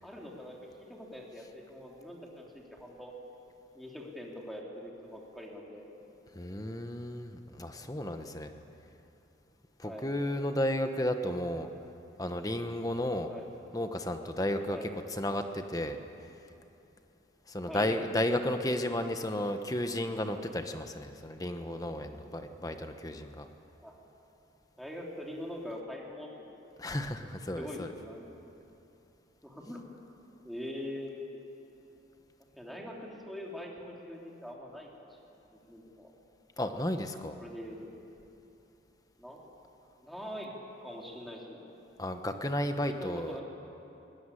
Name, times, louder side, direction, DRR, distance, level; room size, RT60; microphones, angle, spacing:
voice 1, 0.0-3.1 3.7-5.9 9.8-10.1 13.3-13.5 14.7-14.9 17.7-18.0 23.8-23.9 24.8-26.5 27.5-28.2 29.4-29.8 30.4-31.2 32.6-35.1 35.5-36.1 37.4-37.9 39.2-39.4 40.0-40.5 40.8-41.6 43.0-43.4, left 1 dB, ahead, -2 dB, 3.1 m, -43 dB
voice 2, 6.3-8.5 9.8-11.7 12.2-13.3 13.7-16.0 17.5-23.5 26.8-27.9 36.6-37.3 42.0-43.4, left 1 dB, 20° left, 7 dB, 1.2 m, -33 dB
21.0 x 19.5 x 9.9 m, 2.9 s
head